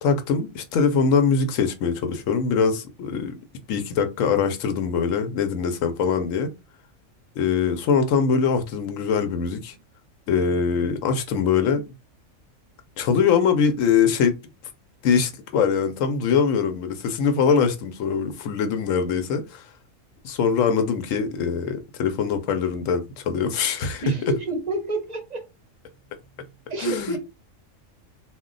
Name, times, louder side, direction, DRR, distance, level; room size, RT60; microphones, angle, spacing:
voice 1, 0.0-3.3 3.7-6.5 7.4-9.7 10.3-11.8 13.0-14.4 15.0-19.6 20.2-24.3 26.8-27.2, left 6 dB, 80° left, 1.0 m, -22 dB
voice 2, 24.0-25.4 26.7-27.2, right 3 dB, 45° right, 0.6 m, -28 dB
2.3 x 2.2 x 3.7 m
omnidirectional pair, 1.4 m